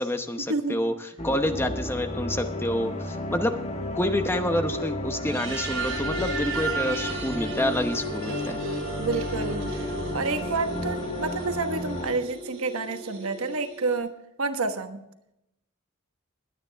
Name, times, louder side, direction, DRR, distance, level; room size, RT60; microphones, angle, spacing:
voice 1, 0.0-3.6 3.9-8.6, left 1 dB, 10° left, 7 dB, 0.8 m, -28 dB
sound 1, 1.2-12.1, left 1 dB, 30° left, 1.3 m, -33 dB
sound 2, 5.1-14.0, right 2 dB, 60° right, 5.2 m, -35 dB
voice 2, 9.0-9.8 10.1-14.1 14.4-15.0, right 3 dB, 80° right, 7 dB, 1.3 m, -29 dB
21.0 x 9.5 x 3.4 m, 0.85 s
head